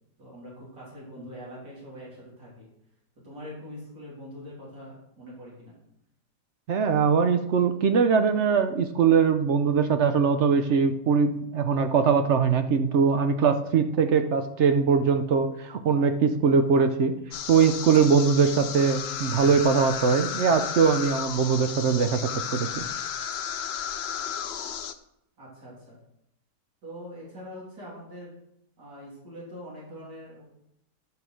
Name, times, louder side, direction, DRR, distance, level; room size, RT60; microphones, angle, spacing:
voice 1, 0.2-2.7 3.2-5.7 25.4-26.0 26.8-28.4 28.8-30.4, equal, 75° right, -6 dB, 3.7 m, -43 dB
voice 2, 6.7-17.1 17.5-22.8, right 6 dB, 60° right, 8 dB, 0.7 m, -22 dB
sound 1, 17.3-24.9, left 8 dB, 70° left, 0.6 m, -33 dB
11.0 x 5.2 x 6.2 m, 0.79 s
omnidirectional pair, 1.8 m